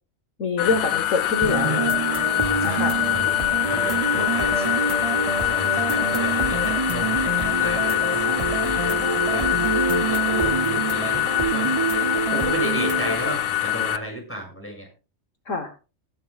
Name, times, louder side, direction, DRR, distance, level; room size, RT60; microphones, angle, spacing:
voice 1, 0.4-2.0 2.6-3.0 15.5-15.7, left 4 dB, 70° left, 6 dB, 1.7 m, -25 dB
sound 1, 0.6-14.0, left 13 dB, 90° left, 1.2 m, -24 dB
sound 2, 1.4-13.4, right 4 dB, 30° right, 0.6 m, -26 dB
voice 2, 2.6-3.3 3.7-4.8 5.5-11.9 12.1-14.9, equal, 10° left, 1 dB, 6.6 m, -34 dB
19.5 x 11.0 x 2.4 m, 0.32 s
omnidirectional pair, 1.4 m